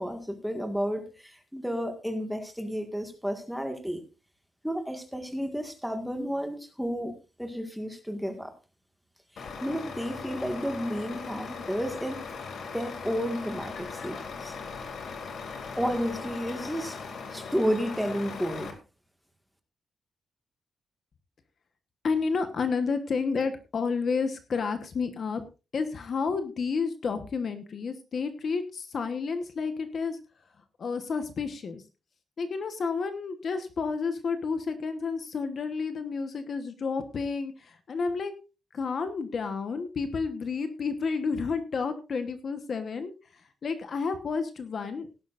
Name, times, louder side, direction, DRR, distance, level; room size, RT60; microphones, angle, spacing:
voice 1, 0.0-4.0 4.6-8.5 9.3-12.4 12.7-14.5 15.7-17.0 17.3-18.8, equal, ahead, 5 dB, 1.8 m, -32 dB
Truck, 9.4-18.7, left 5 dB, 60° left, 2.4 m, -39 dB
voice 2, 22.0-25.4 25.7-30.2 30.8-31.8 32.4-38.3 38.7-43.1 43.6-45.1, left 5 dB, 45° left, 9 dB, 1.1 m, -30 dB
17.5 x 11.0 x 2.5 m, 0.31 s
wide cardioid pair, 175°, 0 cm